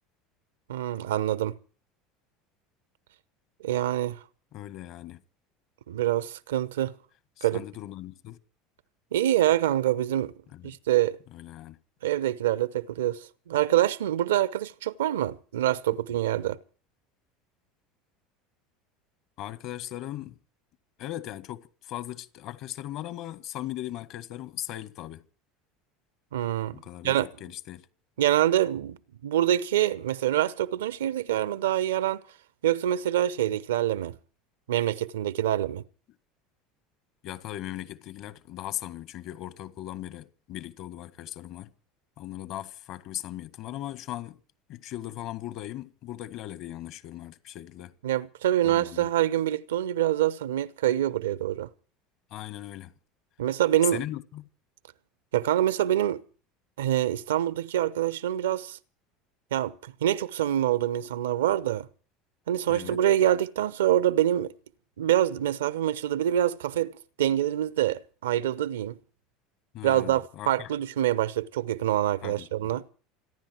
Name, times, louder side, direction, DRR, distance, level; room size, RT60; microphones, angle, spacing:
voice 1, 0.7-1.5 3.6-4.2 5.9-6.9 7.4-7.6 9.1-10.3 10.6-11.2 12.0-16.6 26.3-27.3 28.2-29.0 29.2-32.2 32.6-34.1 34.7-35.8 48.0-51.7 53.4-54.0 55.3-56.2 56.8-58.8 59.5-61.9 62.5-64.5 65.0-66.9 67.2-69.0 69.8-72.8, right 12 dB, 85° right, 0.9 m, -25 dB
voice 2, 4.5-5.2 7.4-8.4 10.5-10.8 11.3-11.8 19.4-20.4 21.0-25.2 26.7-27.9 37.2-41.7 42.2-44.4 44.7-47.9 48.6-49.1 52.3-52.9 53.8-54.4 62.7-63.0 69.7-70.7 72.2-72.7, left 13 dB, 60° left, 1.7 m, -38 dB
28.0 x 10.5 x 4.5 m
hypercardioid pair, 85°, 0 cm